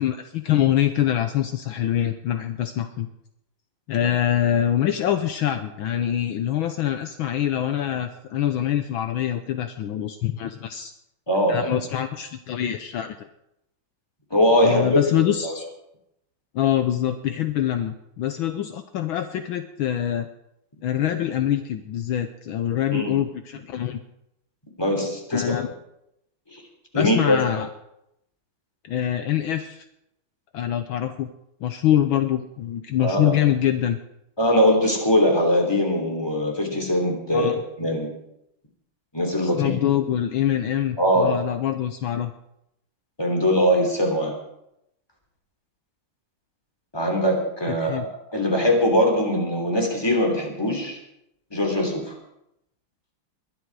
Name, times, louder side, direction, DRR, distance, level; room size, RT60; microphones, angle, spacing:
voice 1, 0.0-3.1 3.9-10.9 11.5-13.3 14.6-15.6 16.5-20.3 20.8-24.0 25.3-25.7 26.9-27.7 28.8-29.8 30.5-31.3 31.6-34.0 37.3-37.6 39.4-42.3 47.8-48.1, left 11 dB, 70° left, 9 dB, 1.5 m, -24 dB
voice 2, 11.3-11.7 14.3-14.8 15.2-15.5 22.9-23.2 24.8-25.6 26.5-26.6 26.9-27.4 33.0-33.3 34.4-38.1 39.1-39.8 41.0-41.4 43.2-44.3 46.9-48.0 48.3-51.0 51.5-52.1, equal, 10° left, 2 dB, 3.2 m, -21 dB
21.0 x 11.5 x 4.8 m, 0.83 s
omnidirectional pair, 2.4 m